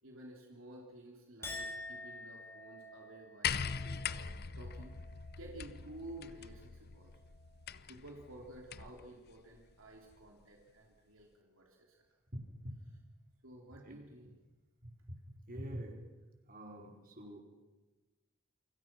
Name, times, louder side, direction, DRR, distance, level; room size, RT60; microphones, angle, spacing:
voice 1, 0.0-4.9 5.4-7.1 7.9-12.0 13.4-14.3, right 1 dB, 70° right, 0 dB, 3.2 m, -52 dB
Chink clink, 1.4-8.0 8.4-8.9, left 1 dB, 10° left, 4.4 m, -50 dB
sound 1, 3.4-9.0 10.1-10.2, left 7 dB, 50° left, 0.8 m, -41 dB
voice 2, 12.3-12.7 13.8-14.0 14.8-16.0 16.5-17.4, equal, 45° right, 2 dB, 4.8 m, -45 dB
28.5 x 25.0 x 6.1 m, 1.2 s
head